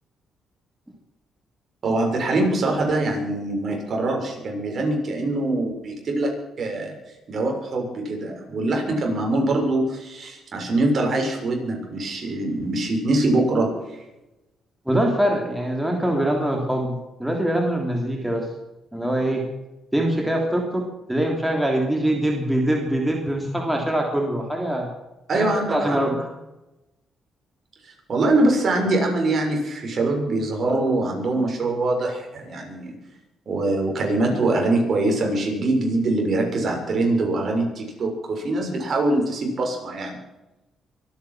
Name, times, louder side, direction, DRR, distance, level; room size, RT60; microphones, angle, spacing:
voice 1, 1.8-6.3 6.6-7.0 7.3-14.0 25.3-26.0 27.8-33.0 33.4-40.2, right 2 dB, 50° right, 1 dB, 6.8 m, -23 dB
voice 2, 14.9-18.5 18.9-19.4 19.9-24.9 25.3-26.3, right 1 dB, 5° right, 1 dB, 3.3 m, -23 dB
24.5 x 9.7 x 6.1 m, 0.99 s
cardioid pair, 90°, 0 cm